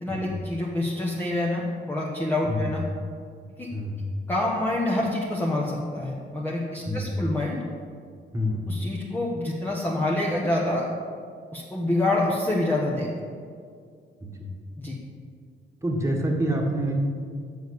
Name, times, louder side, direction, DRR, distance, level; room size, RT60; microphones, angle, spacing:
voice 1, 0.0-2.8 3.6-3.7 4.3-7.6 8.7-10.9 11.5-13.1 14.8-15.0, left 1 dB, 10° left, -4 dB, 1.1 m, -27 dB
voice 2, 8.3-8.6 14.2-14.5 15.8-16.9, equal, 15° right, 0 dB, 1.6 m, -27 dB
6.8 x 6.5 x 6.6 m, 2.1 s
cardioid pair, 90°, 20 cm